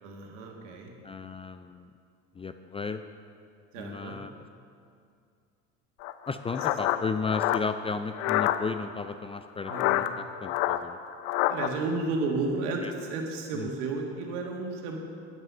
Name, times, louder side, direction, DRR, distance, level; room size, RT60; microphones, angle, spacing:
voice 1, 0.0-0.9 3.7-4.2 9.7-10.1 11.5-15.0, right 3 dB, 75° right, 1 dB, 1.8 m, -32 dB
voice 2, 1.0-1.9 2.4-3.0 3.8-4.3 6.3-10.0 10.4-11.0 13.6-13.7, left 4 dB, 15° left, 9 dB, 0.4 m, -34 dB
sound 1, 6.0-8.6 9.6-11.7, left 14 dB, 75° left, 0.6 m, -27 dB
9.3 x 9.1 x 5.5 m, 2.3 s
hypercardioid pair, 75°, 37 cm